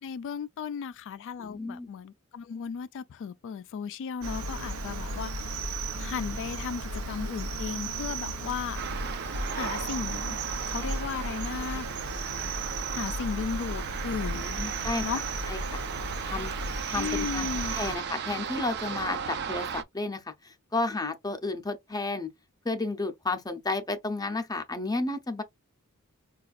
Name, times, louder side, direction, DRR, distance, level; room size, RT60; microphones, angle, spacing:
voice 1, 0.0-5.6 6.0-8.8 9.5-10.4 10.7-11.9 12.9-14.4 15.0-15.2 16.9-17.8, left 6 dB, 60° left, 0.3 m, -35 dB
voice 2, 1.4-1.9 14.3-15.1 15.5-15.8 16.3-16.5 16.9-22.3 22.6-25.4, left 2 dB, 20° left, 0.6 m, -32 dB
Cricket, 4.2-18.0, right 2 dB, 90° right, 0.7 m, -35 dB
sound 1, 8.8-19.8, right 7 dB, 50° right, 0.5 m, -36 dB
4.9 x 2.3 x 2.4 m
head